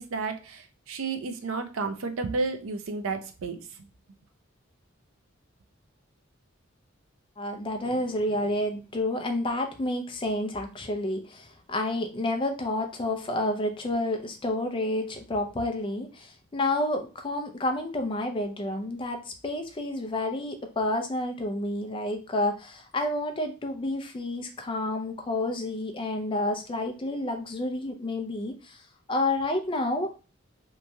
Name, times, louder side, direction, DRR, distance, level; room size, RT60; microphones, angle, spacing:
voice 1, 0.0-3.9, right 4 dB, 75° right, 7 dB, 0.5 m, -32 dB
voice 2, 7.4-28.8 29.1-30.1, left 1 dB, 25° left, 5 dB, 0.4 m, -30 dB
3.0 x 2.6 x 2.2 m, 0.33 s
head